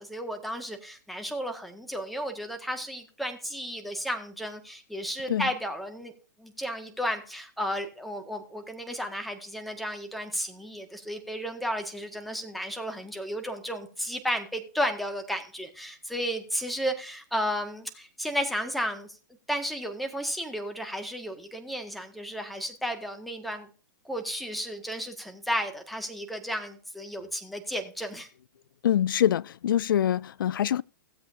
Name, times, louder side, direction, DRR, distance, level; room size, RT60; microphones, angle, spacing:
voice 1, 0.0-6.1 6.4-19.1 19.5-23.7 24.0-28.3, equal, ahead, 1.7 m, -33 dB
voice 2, 28.8-30.8, left 10 dB, 75° left, 0.4 m, -24 dB
16.5 x 7.9 x 2.6 m
hypercardioid pair, 120°, 11 cm